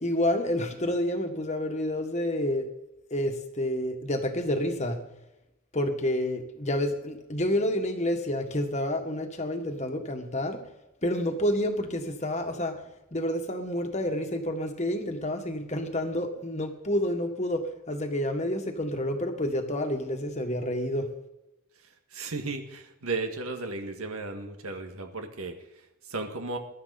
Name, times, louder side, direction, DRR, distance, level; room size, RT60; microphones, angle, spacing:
voice 1, 0.0-2.7 3.1-5.0 5.7-10.6 11.0-12.8 13.1-21.1, left 1 dB, 30° left, 5 dB, 1.6 m, -29 dB
voice 2, 21.8-26.6, right 3 dB, 80° right, 5 dB, 1.8 m, -35 dB
21.5 x 12.0 x 4.2 m, 0.91 s
head